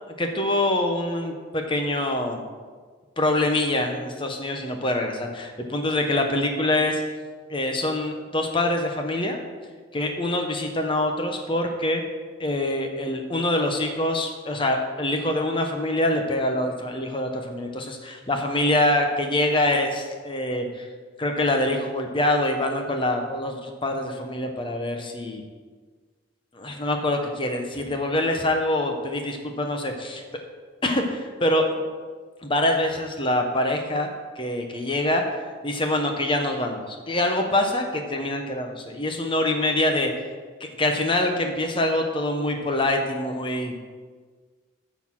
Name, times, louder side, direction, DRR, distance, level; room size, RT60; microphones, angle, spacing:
voice 1, 0.2-2.4 3.2-7.0 7.5-9.4 9.9-12.0 12.4-20.9 21.2-25.4 26.5-30.2 30.8-31.6 32.4-34.1 34.4-35.4 35.6-40.1 40.6-43.8, left 1 dB, 25° left, 4 dB, 0.9 m, -25 dB
10.5 x 4.0 x 7.4 m, 1.5 s
head